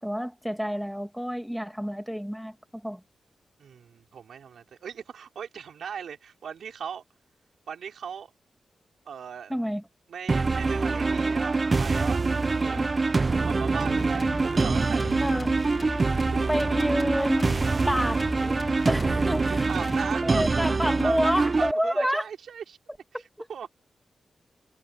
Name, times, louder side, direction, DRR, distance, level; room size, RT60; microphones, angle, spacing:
voice 1, 0.0-3.0 9.5-9.8 12.6-12.9 15.2-15.5 16.5-18.6 18.9-19.7 20.2-22.3 23.1-23.5, equal, ahead, 1.6 m, -29 dB
voice 2, 3.6-7.0 7.7-8.3 9.0-9.5 10.1-12.2 12.6-12.9 13.3-15.2 16.3-16.5 19.5-20.7 21.0-22.8 23.5-23.7, right 7 dB, 85° right, 4.8 m, -38 dB
sound 1, 10.3-21.7, right 3 dB, 35° right, 0.6 m, -25 dB
sound 2, 13.8-20.5, left 4 dB, 35° left, 1.0 m, -40 dB
wide cardioid pair, 110°, 0 cm